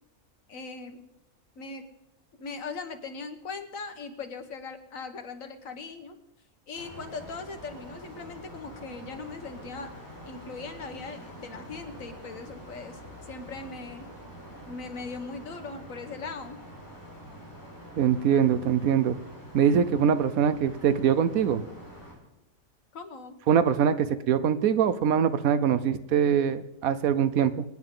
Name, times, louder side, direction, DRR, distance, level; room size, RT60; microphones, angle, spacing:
voice 1, 0.5-1.1 1.6-1.9 2.4-6.2 6.7-14.1 14.7-16.7 22.9-23.4, left 4 dB, 70° left, 7 dB, 1.6 m, -40 dB
sound 1, 6.7-22.1, equal, 15° left, 5.4 m, -46 dB
voice 2, 18.0-19.2 19.5-21.6 23.5-27.6, right 8 dB, 80° right, 13 dB, 1.2 m, -23 dB
26.5 x 9.5 x 3.8 m, 0.90 s
omnidirectional pair, 1.5 m